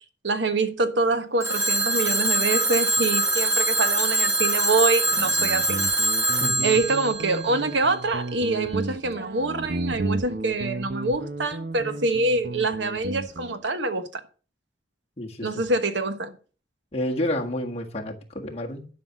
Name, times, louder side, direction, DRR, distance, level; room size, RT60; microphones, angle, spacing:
voice 1, 0.2-5.8 6.6-14.2 15.4-16.4, right 3 dB, 75° right, 1.2 m, -25 dB
Telephone, 1.4-8.2, right 1 dB, 15° right, 1.5 m, -24 dB
Guitar, 5.1-13.6, right 2 dB, 55° right, 0.8 m, -33 dB
voice 2, 15.2-15.5 16.9-18.9, left 1 dB, 35° left, 1.6 m, -30 dB
11.5 x 5.9 x 6.2 m
head